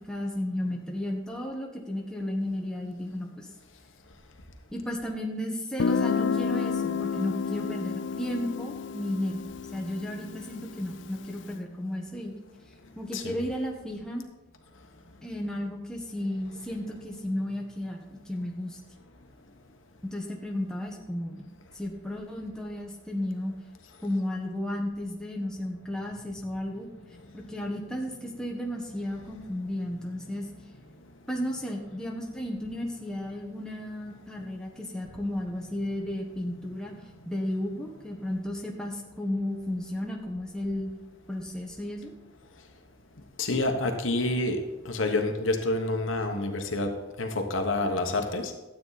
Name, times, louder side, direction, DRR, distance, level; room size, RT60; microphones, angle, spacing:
voice 1, 0.0-3.5 4.7-9.4 9.7-12.4 13.0-14.2 15.2-18.8 20.0-21.5 21.7-23.5 24.0-26.9 27.3-30.4 31.3-36.9 37.2-40.9 41.3-42.1, left 1 dB, 5° left, -1 dB, 1.3 m, -33 dB
Guitar, 5.8-11.4, left 5 dB, 60° left, 0.4 m, -30 dB
voice 2, 43.4-48.5, left 2 dB, 75° left, 4 dB, 1.3 m, -28 dB
12.5 x 8.6 x 4.2 m, 1.1 s
head